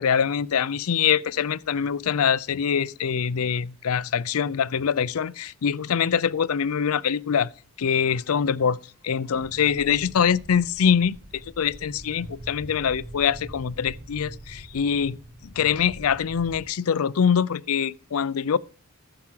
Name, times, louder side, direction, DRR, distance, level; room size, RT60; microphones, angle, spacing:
voice 1, 0.0-7.5 7.8-15.2 15.4-18.6, left 7 dB, 75° left, 0.5 m, -24 dB
sound 1, 9.3-16.6, right 1 dB, 60° right, 4.5 m, -43 dB
14.0 x 4.8 x 7.4 m
head